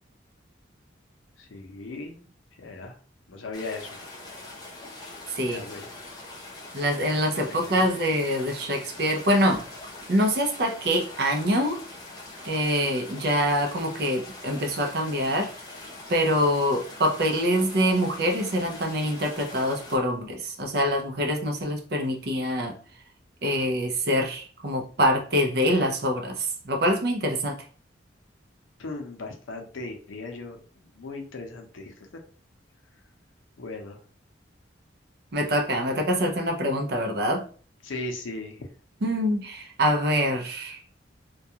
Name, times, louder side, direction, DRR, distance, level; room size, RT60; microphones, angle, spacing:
voice 1, 1.4-2.3 2.6-3.0 3.3-4.0 5.5-6.0 7.4-7.9 28.8-31.9 33.6-34.0 37.8-38.7, left 2 dB, 90° left, 3 dB, 0.6 m, -38 dB
sound 1, 3.5-20.0, left 2 dB, 20° left, 0.7 m, -43 dB
voice 2, 6.7-9.6 10.1-11.8 12.4-15.5 16.1-22.7 23.4-27.6 35.3-37.4 39.0-40.8, equal, 55° right, 3 dB, 0.5 m, -25 dB
2.3 x 2.2 x 2.7 m, 0.41 s
head